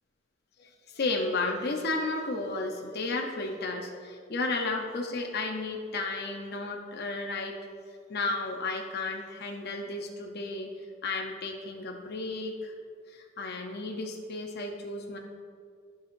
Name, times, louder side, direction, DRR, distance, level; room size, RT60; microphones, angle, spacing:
voice 1, 0.6-7.6 8.1-10.7 11.0-12.7 13.1-15.2, left 3 dB, 55° left, 2 dB, 0.7 m, -33 dB
14.0 x 5.5 x 2.5 m, 2.2 s
head